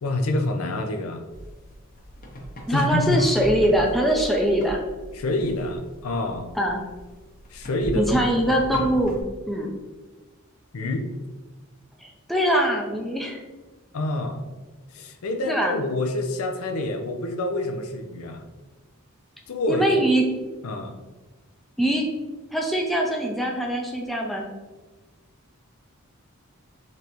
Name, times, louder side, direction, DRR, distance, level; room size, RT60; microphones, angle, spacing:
voice 1, 0.0-1.2 2.7-3.2 5.1-6.5 7.5-8.3 10.7-11.1 13.9-14.4 14.9-18.4 19.5-19.8 20.6-21.0, left 2 dB, 85° left, 5 dB, 0.5 m, -27 dB
sound 1, 1.3-9.2, equal, 40° left, 0.8 m, -39 dB
voice 2, 2.7-4.8 6.6-6.8 7.9-9.2 9.5-9.7 12.0-13.4 15.5-15.8 19.7-20.2 21.8-22.1 22.5-24.4, right 1 dB, ahead, 0 dB, 0.4 m, -22 dB
3.9 x 3.3 x 2.9 m, 1.2 s
head